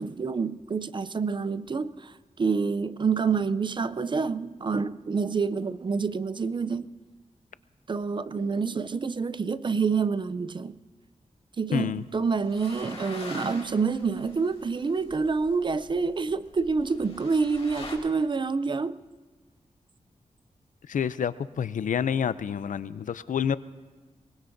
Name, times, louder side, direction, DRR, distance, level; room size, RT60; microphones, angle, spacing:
voice 1, 0.0-2.1 2.4-6.9 7.9-10.8 11.6-19.0, right 5 dB, 40° right, 0.4 m, -27 dB
voice 2, 11.7-12.0 20.9-23.6, left 8 dB, 85° left, 0.4 m, -28 dB
sound 1, 11.9-18.0, left 3 dB, 50° left, 2.2 m, -45 dB
23.5 x 20.0 x 2.6 m
wide cardioid pair, 115°, 13 cm